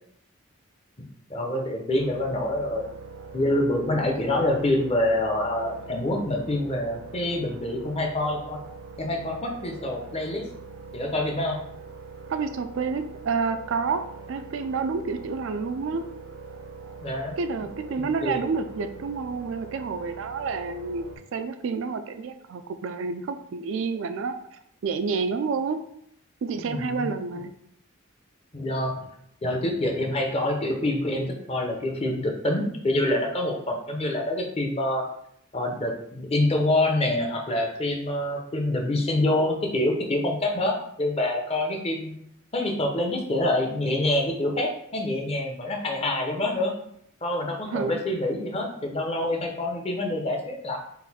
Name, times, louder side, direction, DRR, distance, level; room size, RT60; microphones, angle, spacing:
voice 1, 1.3-2.9 3.3-8.6 9.0-10.5 10.9-11.6 17.0-17.3 18.2-18.5 26.6-27.1 28.5-29.0 29.4-35.0 35.5-42.1 42.5-46.7 47.2-50.8, left 1 dB, 30° left, 2 dB, 0.6 m, -26 dB
sound 1, 1.9-21.2, right 4 dB, 85° right, 0.7 m, -43 dB
voice 2, 12.3-16.1 17.4-21.1 21.3-25.8 26.4-27.5 47.7-48.0, right 4 dB, 65° right, 8 dB, 0.3 m, -29 dB
3.9 x 2.5 x 4.1 m, 0.72 s
head